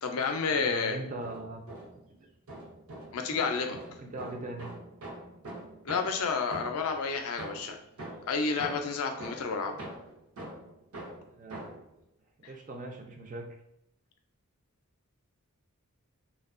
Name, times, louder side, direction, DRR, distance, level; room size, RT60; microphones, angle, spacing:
voice 1, 0.0-1.0 3.1-3.8 5.8-7.8 8.3-9.7, left 5 dB, 70° left, 5 dB, 0.4 m, -30 dB
voice 2, 0.5-1.6 4.0-4.7 9.6-9.8 11.3-11.6 12.4-13.5, right 2 dB, 35° right, 3 dB, 0.3 m, -40 dB
sound 1, 1.2-2.1 2.5-7.0 7.4-11.9, right 1 dB, 75° right, 0.7 m, -44 dB
2.6 x 2.1 x 2.4 m, 0.82 s
head